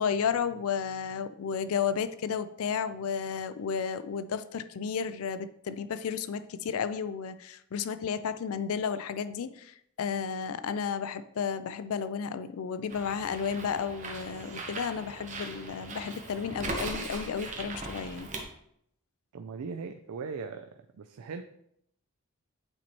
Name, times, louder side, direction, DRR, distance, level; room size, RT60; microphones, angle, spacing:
voice 1, 0.0-18.3, left 6 dB, 75° left, 12 dB, 0.4 m, -32 dB
Bird, 12.9-18.4, right 2 dB, 35° right, 0.8 m, -39 dB
voice 2, 19.3-20.7 21.0-21.4, right 5 dB, 85° right, 7 dB, 0.4 m, -38 dB
8.8 x 4.2 x 3.0 m, 0.73 s
head